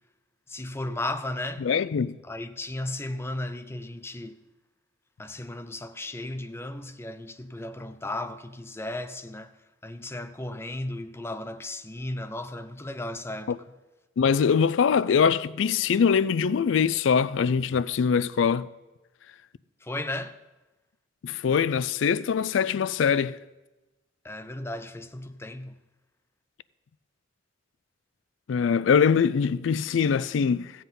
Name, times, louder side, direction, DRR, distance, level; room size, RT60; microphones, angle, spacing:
voice 1, 0.5-1.7 2.2-4.4 5.2-9.5 9.8-13.6 19.8-20.4 24.2-25.8, left 1 dB, 15° left, 0.5 m, -35 dB
voice 2, 1.6-2.2 14.2-18.7 21.2-23.4 28.5-30.7, left 6 dB, 85° left, 0.4 m, -23 dB
15.0 x 7.8 x 5.4 m
head